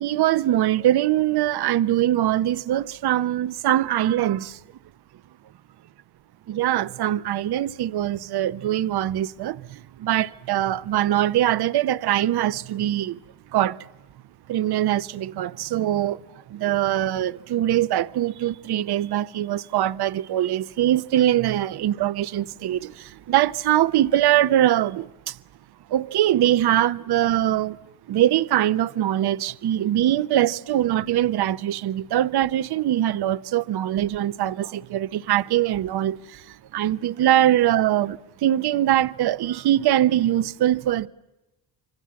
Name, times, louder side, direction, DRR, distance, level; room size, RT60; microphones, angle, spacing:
voice 1, 0.0-4.5 6.5-9.6 10.0-13.2 13.5-13.8 14.5-16.2 16.5-22.9 23.3-25.1 25.9-27.8 28.1-36.2 36.7-38.2 38.4-41.1, right 12 dB, 55° right, 0.8 m, -22 dB
26.0 x 24.5 x 7.6 m
supercardioid pair, 65°, 47 cm